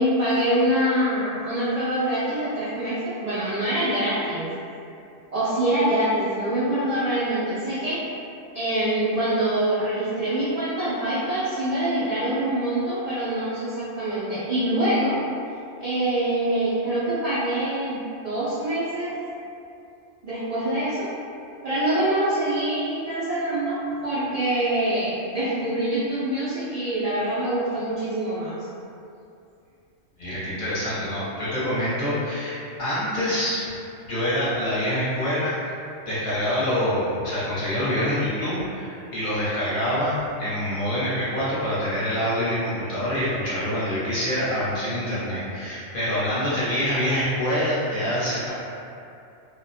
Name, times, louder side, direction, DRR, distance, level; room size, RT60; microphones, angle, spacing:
voice 1, 0.0-4.5 5.3-8.0 8.5-15.1 15.8-19.2 20.2-21.1 21.6-28.5, right 1 dB, 70° right, -11 dB, 0.3 m, -25 dB
voice 2, 30.2-33.6 34.0-35.7 36.0-48.5, equal, 45° left, -11 dB, 0.9 m, -26 dB
2.4 x 2.1 x 2.6 m, 2.6 s
omnidirectional pair, 1.3 m